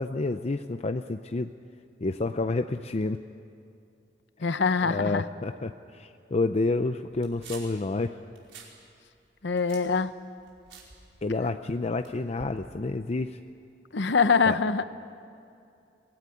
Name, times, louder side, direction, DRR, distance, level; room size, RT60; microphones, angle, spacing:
voice 1, 0.0-1.5 2.0-3.2 4.8-8.1 11.2-13.4 14.5-14.6, left 3 dB, 35° left, 9 dB, 0.6 m, -29 dB
voice 2, 4.4-5.2 9.4-10.1 11.4-11.6 13.9-14.8, left 5 dB, 70° left, 13 dB, 0.9 m, -24 dB
sound 1, 7.1-7.8 8.2-8.8 9.1-11.6 12.0-12.6, right 5 dB, 75° right, 5.1 m, -49 dB
23.5 x 19.0 x 9.9 m, 2.5 s
head